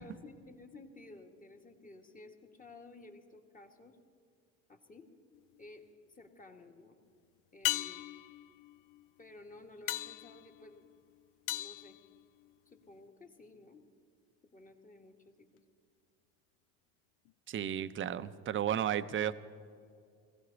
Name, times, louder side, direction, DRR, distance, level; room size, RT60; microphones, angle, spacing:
voice 1, 0.0-4.0 4.7-5.1 5.6-7.0 7.5-8.1 9.2-10.9 11.5-12.0 12.7-13.8 14.5-15.5, left 2 dB, 20° left, 4 dB, 1.7 m, -54 dB
sound 1, 5.3-5.9 7.6-12.8 17.3-17.4, left 16 dB, 65° left, 0.5 m, -40 dB
voice 2, 17.5-19.3, right 10 dB, 35° right, 14 dB, 0.6 m, -33 dB
20.0 x 15.5 x 4.0 m, 2.4 s
supercardioid pair, 85°, 36 cm